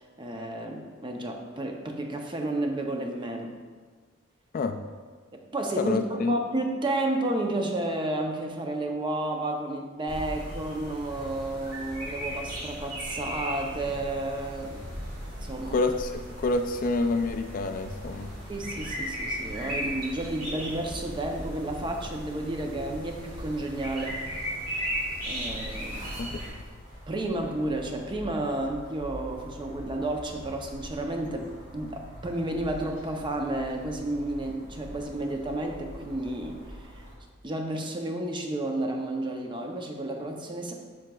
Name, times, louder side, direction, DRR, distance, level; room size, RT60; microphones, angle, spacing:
voice 1, 0.0-3.5 5.3-14.8 15.4-15.8 18.5-24.2 25.3-26.1 27.1-37.0 37.4-40.7, right 1 dB, 25° right, 3 dB, 0.6 m, -31 dB
voice 2, 5.8-6.4 15.7-18.3 26.2-26.5, left 3 dB, 40° left, 7 dB, 0.3 m, -28 dB
sound 1, 10.1-26.5, equal, 80° right, 1.8 m, -36 dB
sound 2, 25.4-37.1, equal, 40° right, 1.7 m, -45 dB
7.4 x 5.9 x 2.3 m, 1.5 s
head